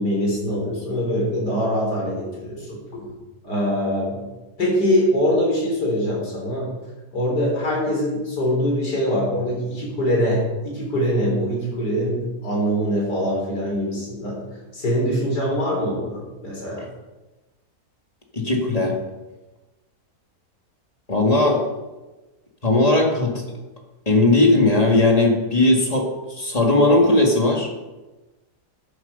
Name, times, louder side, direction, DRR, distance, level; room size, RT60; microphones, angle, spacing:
voice 1, 0.0-3.1 3.4-4.2 4.6-6.7 7.1-14.4 14.7-16.9, equal, 85° left, -3 dB, 4.5 m, -23 dB
voice 2, 18.3-19.0 21.1-21.6 22.6-23.4 24.1-27.7, left 2 dB, 25° left, 1 dB, 1.9 m, -18 dB
13.0 x 7.9 x 5.3 m, 1.1 s
omnidirectional pair, 1.7 m